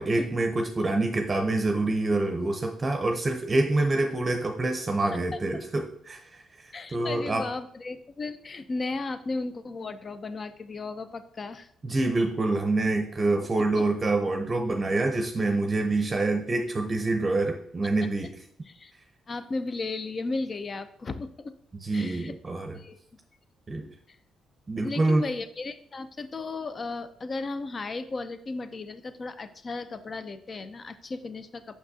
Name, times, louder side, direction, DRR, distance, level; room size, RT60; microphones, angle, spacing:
voice 1, 0.0-7.4 11.8-18.3 21.8-22.8 23.7-23.8 24.7-25.2, right 2 dB, 30° right, 3 dB, 0.7 m, -26 dB
voice 2, 5.1-5.6 6.7-11.7 13.8-13.9 18.7-18.9 19.3-21.5 21.9-22.3 22.7-23.0 24.1-24.2 24.8-31.8, left 3 dB, 40° left, 11 dB, 0.5 m, -35 dB
5.9 x 5.9 x 2.7 m, 0.66 s
cardioid pair, 90°, 0 cm